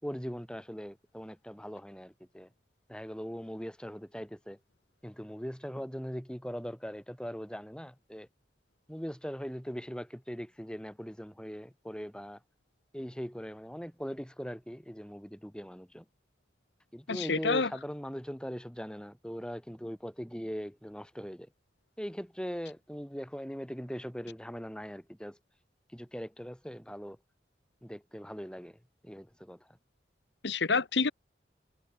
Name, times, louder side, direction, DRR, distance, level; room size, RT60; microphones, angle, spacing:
voice 1, 0.0-2.5 2.9-4.6 5.0-8.3 8.9-12.4 12.9-16.1 16.9-21.5 22.0-25.4 25.9-27.2 27.8-28.8 29.0-29.8, equal, 5° left, 5.2 m, -40 dB
voice 2, 17.1-17.7 30.4-31.1, left 4 dB, 80° left, 1.3 m, -28 dB
head